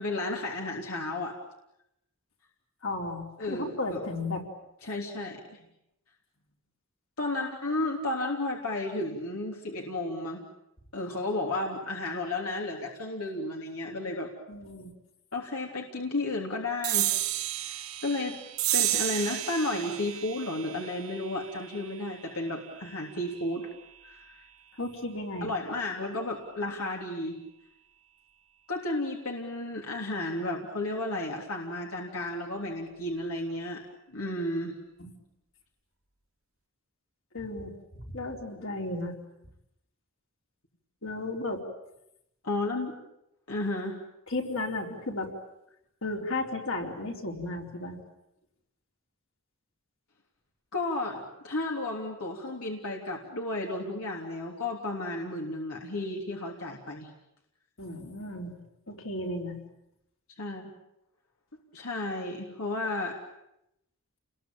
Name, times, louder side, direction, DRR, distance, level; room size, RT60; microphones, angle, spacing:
voice 1, 0.0-1.3 3.4-4.0 4.8-5.6 7.2-10.4 10.9-14.3 15.3-17.2 17.5-18.4 18.7-23.7 24.0-24.4 25.4-27.4 28.7-33.8 34.1-34.8 42.4-43.0 43.5-44.0 50.7-57.1 60.4-60.7 61.7-63.2, left 2 dB, 80° left, 0 dB, 3.4 m, -33 dB
voice 2, 2.8-4.4 14.5-14.9 24.8-25.5 35.0-35.1 37.3-39.2 41.0-41.6 44.3-45.3 46.0-48.0 57.8-58.5 58.9-59.6, left 2 dB, 60° left, 2 dB, 4.5 m, -34 dB
sound 1, 16.8-23.7, right 14 dB, 75° right, 2.0 m, -32 dB
30.0 x 21.5 x 8.9 m, 0.83 s
head